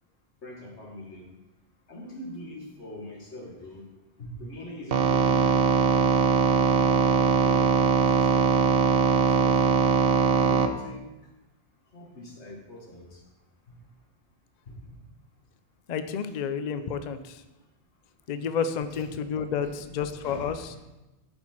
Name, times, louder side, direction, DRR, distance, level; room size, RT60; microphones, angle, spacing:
voice 1, 0.4-1.2 1.9-3.9 4.2-6.1 6.6-8.7 9.4-9.8 10.3-11.0 11.9-13.2 13.7-13.8 14.7-15.0 18.4-18.5 18.9-19.0 19.6-20.8, left 1 dB, 80° left, -2 dB, 2.0 m, -42 dB
sound 1, 4.9-10.7, right 5 dB, 65° right, 0.8 m, -21 dB
voice 2, 15.9-17.2 18.3-20.9, left 7 dB, 55° left, 10 dB, 0.5 m, -30 dB
11.5 x 4.4 x 4.4 m, 1.0 s
omnidirectional pair, 1.1 m